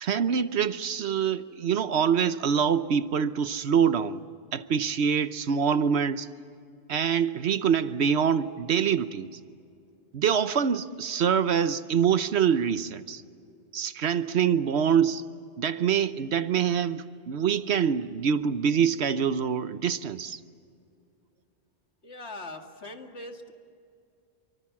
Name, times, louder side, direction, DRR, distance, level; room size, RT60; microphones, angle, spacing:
voice 1, 0.0-4.2 4.5-6.3 6.9-9.3 10.1-13.2 13.7-15.2 15.6-20.4, right 7 dB, 75° right, 1.1 m, -25 dB
voice 2, 22.0-23.5, left 2 dB, 75° left, 2.5 m, -41 dB
28.5 x 24.0 x 7.4 m
omnidirectional pair, 1.1 m